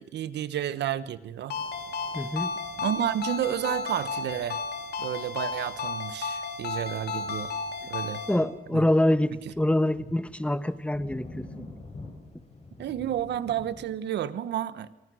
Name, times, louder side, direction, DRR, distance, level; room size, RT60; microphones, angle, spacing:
voice 1, 0.0-1.5 2.8-4.6 5.0-7.5 7.9-8.2 8.7-8.8 12.8-14.9, right 10 dB, 80° right, 15 dB, 1.1 m, -31 dB
Ringtone, 1.5-8.4, left 4 dB, 75° left, 3.9 m, -33 dB
sound 1, 1.5-13.9, left 2 dB, 35° left, 7.2 m, -49 dB
voice 2, 2.1-2.5 8.3-11.8, left 1 dB, 5° left, 13 dB, 1.2 m, -25 dB
30.0 x 24.0 x 6.3 m, 1.0 s
cardioid pair, 90°, 17 cm